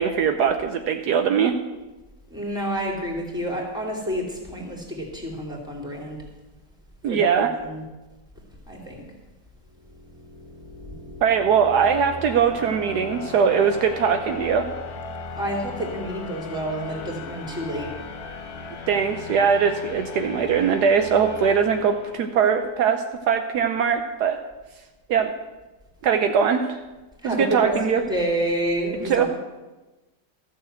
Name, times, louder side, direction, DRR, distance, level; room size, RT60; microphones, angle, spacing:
voice 1, 0.0-1.5 7.0-7.5 11.2-14.7 18.9-24.4 25.1-25.3 26.0-26.8 27.2-28.0 29.1-29.3, right 7 dB, 75° right, 6 dB, 1.2 m, -21 dB
voice 2, 2.3-6.3 7.1-7.8 8.7-9.1 15.3-17.9 27.2-29.3, equal, ahead, -1 dB, 2.4 m, -29 dB
sound 1, 9.7-22.6, left 3 dB, 60° left, 1.4 m, -37 dB
13.5 x 6.7 x 7.8 m, 1.1 s
omnidirectional pair, 1.9 m